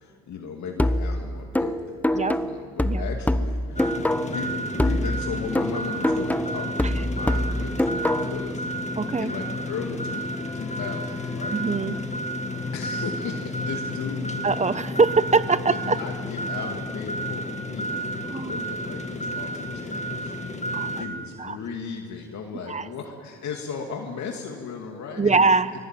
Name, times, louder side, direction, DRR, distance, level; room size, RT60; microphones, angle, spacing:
voice 1, 0.0-4.0 4.3-11.6 12.7-14.5 15.7-20.5 21.0-25.8, left 5 dB, 65° left, 2 dB, 2.5 m, -36 dB
sound 1, 0.8-4.5 4.8-8.5, left 1 dB, 5° left, 0.9 m, -25 dB
sound 2, 3.8-21.1, equal, 25° left, 2.3 m, -31 dB
voice 2, 9.0-9.3 11.5-11.9 14.4-16.0 18.2-18.7 20.7-21.0 21.4-21.6 22.7-22.9 25.2-25.7, right 4 dB, 25° right, 14 dB, 1.0 m, -23 dB
23.5 x 20.5 x 9.2 m, 2.2 s
cardioid pair, 90°, 30 cm